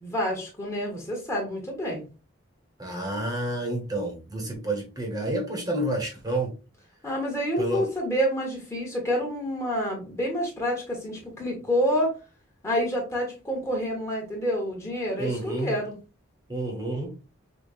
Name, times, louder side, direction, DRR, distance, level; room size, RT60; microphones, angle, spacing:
voice 1, 0.0-2.0 7.0-12.2 12.6-16.0, equal, 15° left, 1.1 m, -28 dB
voice 2, 2.8-6.5 7.6-7.9 15.2-15.8 16.5-17.2, right 1 dB, 20° right, 0.9 m, -29 dB
5.0 x 2.2 x 2.4 m
head